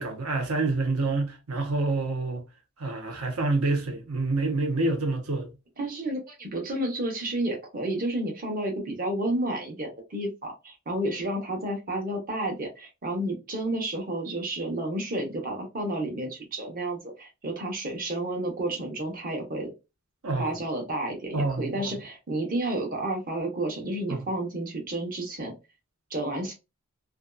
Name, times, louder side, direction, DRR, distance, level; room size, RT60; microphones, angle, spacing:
voice 1, 0.0-2.4 2.8-5.5 20.2-20.5 21.3-21.9 24.1-24.2, right 2 dB, 80° right, 0.7 m, -27 dB
voice 2, 5.8-19.7 20.4-25.5 26.1-26.5, right 1 dB, 40° right, 0.9 m, -31 dB
2.6 x 2.3 x 2.2 m
head